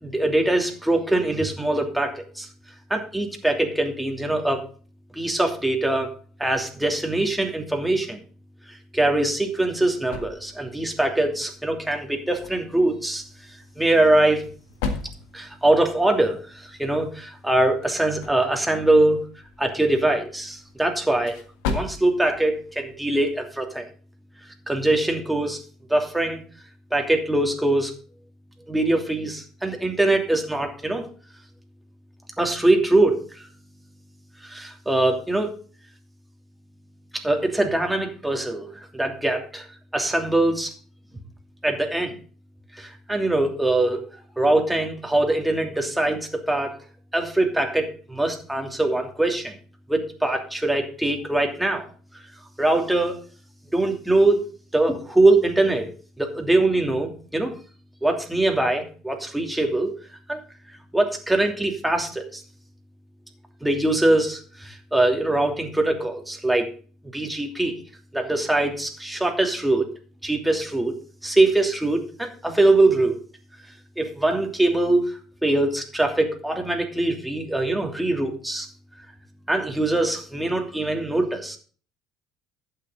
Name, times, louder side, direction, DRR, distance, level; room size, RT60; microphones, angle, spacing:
voice 1, 0.0-2.5 2.9-4.6 5.1-6.1 6.4-8.2 8.7-13.2 13.8-14.5 15.3-19.2 19.6-21.4 21.7-23.9 24.7-25.6 25.9-26.4 26.9-27.9 28.7-31.1 32.4-33.5 34.4-35.5 37.1-38.7 38.9-39.7 39.9-40.7 41.6-42.1 42.8-44.0 44.4-46.8 47.1-49.5 49.9-51.8 52.6-53.2 53.7-54.5 54.7-55.9 56.2-57.5 58.0-59.9 60.3-60.4 60.9-62.4 63.6-66.7 67.1-67.8 68.1-69.9 70.2-70.9 71.2-73.2 74.0-78.7 79.5-81.6, right 2 dB, 5° right, 2 dB, 2.8 m, -22 dB
sound 1, 9.3-23.7, left 4 dB, 75° left, 1.7 m, -38 dB
11.5 x 8.7 x 3.9 m, 0.40 s
hypercardioid pair, 65°, 0 cm